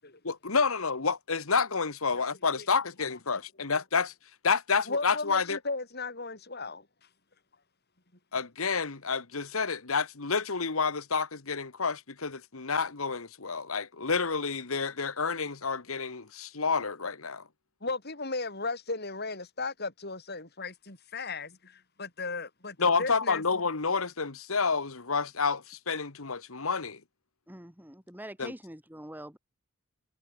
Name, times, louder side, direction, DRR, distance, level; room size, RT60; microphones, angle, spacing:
voice 1, 0.2-4.1 4.4-5.6 8.3-17.4 22.8-27.0 28.4-28.5, left 5 dB, 80° left, 1.6 m, -29 dB
voice 2, 3.1-3.7 4.9-7.1 17.8-23.4, left 3 dB, 50° left, 6.3 m, -36 dB
voice 3, 27.5-29.4, right 1 dB, 10° right, 3.4 m, -44 dB
head